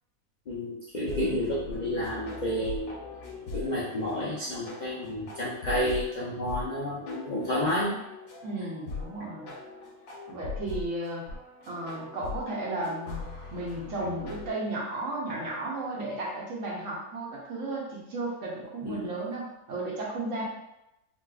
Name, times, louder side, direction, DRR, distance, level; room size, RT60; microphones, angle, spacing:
voice 1, 0.5-3.0 3.5-8.0 18.8-19.1, equal, 60° left, -6 dB, 0.4 m, -30 dB
sound 1, 1.0-14.5, left 4 dB, 90° left, 1.4 m, -41 dB
voice 2, 8.4-9.5 10.3-11.3 11.7-20.4, right 2 dB, 60° right, -3 dB, 1.1 m, -34 dB
3.9 x 2.4 x 2.3 m, 0.88 s
omnidirectional pair, 1.6 m